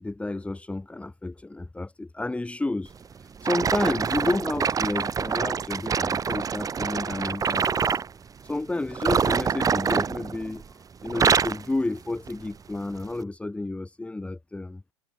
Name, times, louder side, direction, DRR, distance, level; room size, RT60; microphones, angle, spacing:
voice 1, 0.0-2.9 3.4-7.9 8.4-14.8, left 2 dB, 5° left, 2.9 m, -31 dB
sound 1, 3.4-8.1 8.9-10.7 11.0-11.7 12.3-12.5 13.1-13.2, right 6 dB, 20° right, 3.7 m, -25 dB
figure-of-eight pair, 85°, 17 cm